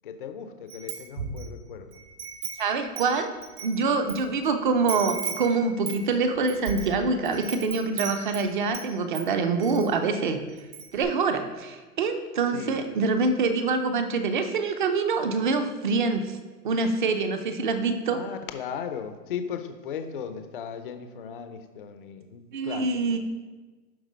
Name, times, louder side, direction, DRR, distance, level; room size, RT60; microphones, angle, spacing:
voice 1, 0.0-2.0 12.5-12.8 18.1-22.8, left 7 dB, 35° left, 7 dB, 0.5 m, -37 dB
Wind chime, 0.7-1.5 1.9-4.2 4.4-4.5 4.9-8.9 9.1-9.9 10.2-10.3 10.6-11.0, right 6 dB, 80° right, 2.3 m, -36 dB
voice 2, 2.6-3.3 3.6-10.4 10.9-16.4 16.6-18.2 22.5-23.2, right 4 dB, 30° right, 8 dB, 0.6 m, -25 dB
11.0 x 3.8 x 5.1 m, 1.3 s
hypercardioid pair, 155°, 47 cm